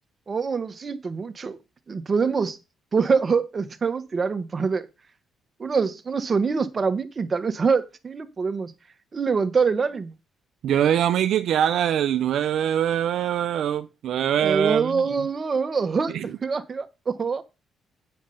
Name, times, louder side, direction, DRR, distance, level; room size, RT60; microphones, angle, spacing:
voice 1, 0.3-1.6 1.9-2.6 2.9-4.9 5.6-8.7 9.1-10.1 14.4-17.4, right 5 dB, 35° right, 1.3 m, -25 dB
voice 2, 10.6-15.0 16.1-16.3, right 10 dB, 75° right, 0.6 m, -23 dB
8.5 x 6.5 x 5.7 m
cardioid pair, 90°, 0 cm